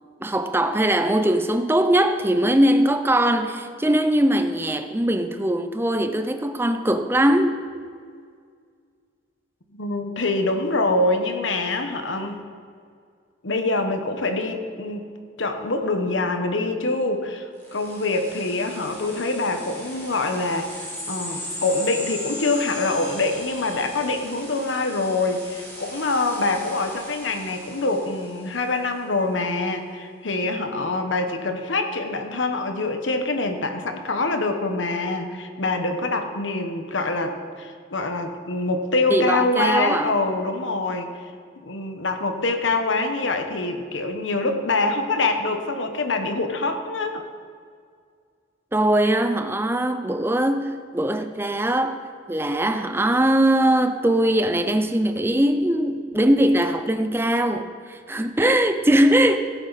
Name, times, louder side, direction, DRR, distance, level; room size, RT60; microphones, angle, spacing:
voice 1, 0.2-7.7 39.1-40.1 48.7-52.0 52.3-59.4, right 1 dB, 10° right, 0.6 m, -21 dB
voice 2, 9.7-12.4 13.4-15.1 15.4-41.3 41.6-47.2, left 2 dB, 90° left, 1.2 m, -25 dB
sound 1, 17.6-28.7, left 1 dB, 10° left, 3.2 m, -38 dB
16.0 x 9.1 x 4.1 m
head